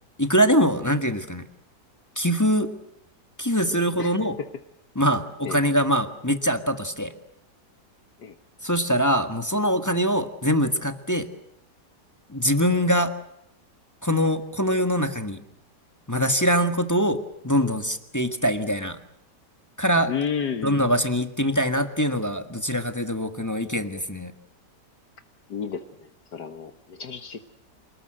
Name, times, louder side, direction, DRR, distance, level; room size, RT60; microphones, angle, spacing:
voice 1, 0.2-1.4 2.1-2.7 3.4-4.4 4.9-7.1 8.6-11.3 12.3-13.1 14.0-15.4 16.1-19.0 19.8-20.1 20.6-24.3, equal, 10° left, 7 dB, 1.5 m, -23 dB
voice 2, 20.1-20.8 25.5-25.8 26.3-27.4, left 7 dB, 70° left, 8 dB, 1.9 m, -31 dB
28.0 x 19.5 x 7.8 m, 0.78 s
omnidirectional pair, 1.8 m